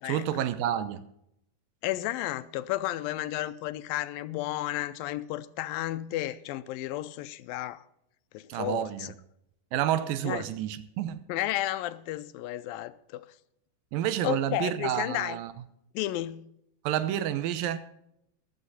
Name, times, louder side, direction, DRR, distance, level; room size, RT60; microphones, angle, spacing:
voice 1, 0.0-1.1 8.5-9.1 9.7-11.2 13.9-15.5 16.8-17.8, right 11 dB, 90° right, 2.6 m, -29 dB
voice 2, 1.8-7.8 8.3-9.1 10.2-10.5 11.3-13.3 14.2-15.4 15.9-16.5, left 14 dB, 90° left, 2.5 m, -32 dB
15.0 x 12.0 x 4.1 m
omnidirectional pair, 4.0 m